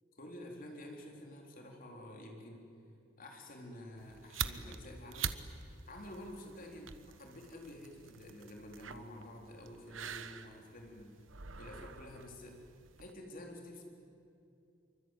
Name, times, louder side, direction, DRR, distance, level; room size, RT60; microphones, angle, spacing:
voice 1, 0.2-2.6 3.2-5.4 5.7-6.9 7.2-11.1 11.5-12.6 13.0-13.8, left 1 dB, 45° left, 1 dB, 4.0 m, -49 dB
sound 1, 4.0-13.1, right 7 dB, 90° right, 1.2 m, -45 dB
25.0 x 24.5 x 9.2 m, 2.6 s
head